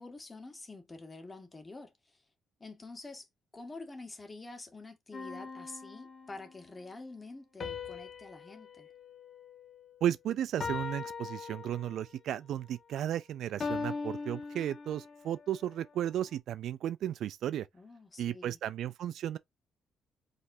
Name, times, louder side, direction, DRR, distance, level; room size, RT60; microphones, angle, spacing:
voice 1, 0.0-2.2 2.6-3.3 3.5-8.9 17.7-18.6, left 3 dB, 20° left, 1.8 m, -47 dB
sound 1, 5.1-6.6 7.6-10.1 10.6-12.2 13.6-15.3, left 4 dB, 45° left, 1.3 m, -40 dB
voice 2, 10.0-17.7 18.2-19.4, right 11 dB, 75° right, 0.4 m, -34 dB
5.1 x 3.4 x 2.7 m
cardioid pair, 90°, 0 cm